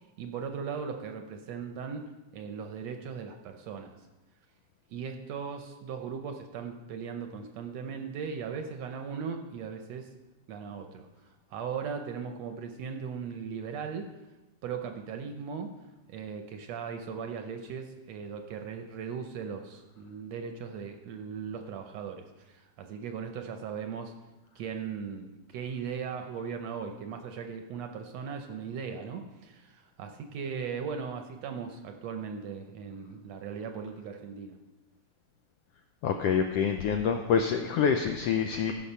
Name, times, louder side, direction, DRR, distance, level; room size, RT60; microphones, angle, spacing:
voice 1, 0.2-4.0 4.9-10.1 10.5-11.1 11.5-14.1 14.6-15.7 16.1-24.1 24.6-34.6, right 6 dB, 70° right, 6 dB, 1.7 m, -38 dB
voice 2, 36.0-38.7, left 7 dB, 80° left, 5 dB, 1.4 m, -26 dB
15.0 x 6.2 x 5.5 m, 1.1 s
omnidirectional pair, 3.5 m